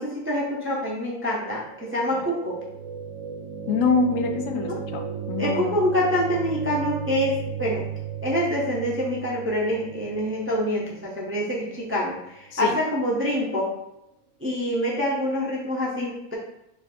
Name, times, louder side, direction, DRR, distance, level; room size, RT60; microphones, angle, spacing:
voice 1, 0.0-2.6 5.4-7.8 8.2-13.7 14.4-16.3, equal, 20° right, -4 dB, 0.4 m, -26 dB
sound 1, 1.3-13.3, right 7 dB, 80° right, 1.1 m, -36 dB
voice 2, 3.7-5.9 12.5-12.8, left 4 dB, 85° left, 5 dB, 1.0 m, -25 dB
3.2 x 2.5 x 4.2 m, 0.83 s
omnidirectional pair, 1.3 m